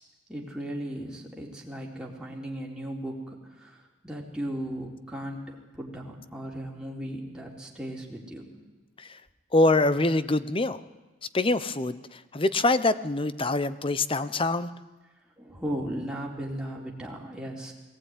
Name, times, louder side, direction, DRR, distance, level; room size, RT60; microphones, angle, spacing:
voice 1, 0.3-8.6 15.4-17.7, right 1 dB, 5° right, -2 dB, 3.9 m, -36 dB
voice 2, 9.5-10.8 11.3-14.7, left 2 dB, 30° left, 14 dB, 0.9 m, -25 dB
21.5 x 19.0 x 9.7 m, 1.2 s
head